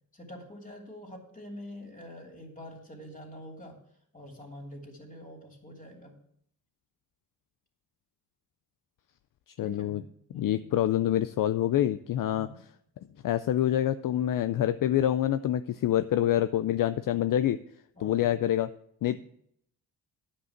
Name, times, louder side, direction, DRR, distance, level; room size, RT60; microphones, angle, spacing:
voice 1, 0.1-3.8 4.1-6.2 9.6-10.1 10.3-10.7 12.2-12.6 17.9-18.4 19.1-19.2, left 1 dB, 20° left, 1 dB, 3.1 m, -46 dB
voice 2, 9.6-10.0 10.3-12.5 13.2-17.6 18.0-18.7 19.0-19.2, left 12 dB, 60° left, 12 dB, 0.5 m, -26 dB
9.8 x 5.4 x 7.3 m, 0.70 s
cardioid pair, 75°, 39 cm